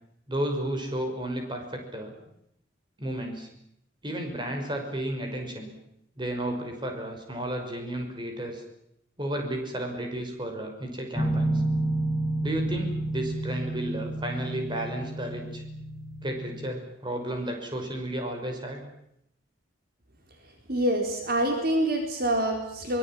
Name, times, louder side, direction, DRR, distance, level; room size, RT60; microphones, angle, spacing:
voice 1, 0.3-2.1 3.0-3.5 4.0-5.7 6.2-8.6 9.2-11.6 12.4-15.6 16.2-18.8, right 1 dB, 25° right, 4 dB, 5.9 m, -33 dB
sound 1, 11.2-16.7, right 1 dB, ahead, 2.9 m, -30 dB
voice 2, 20.7-23.0, right 1 dB, 50° right, 3 dB, 4.1 m, -26 dB
24.5 x 22.0 x 9.2 m, 0.77 s
head